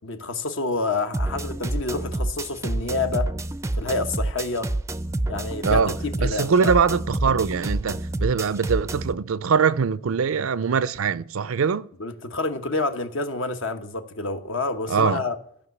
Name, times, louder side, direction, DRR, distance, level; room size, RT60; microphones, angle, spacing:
voice 1, 0.0-3.3 3.8-4.7 5.3-6.7 12.0-15.4, left 3 dB, 65° left, 1.1 m, -28 dB
sound 1, 1.1-9.1, right 2 dB, 15° right, 0.4 m, -28 dB
voice 2, 5.6-11.9 14.9-15.2, right 6 dB, 75° right, 0.5 m, -22 dB
14.5 x 5.7 x 8.2 m
head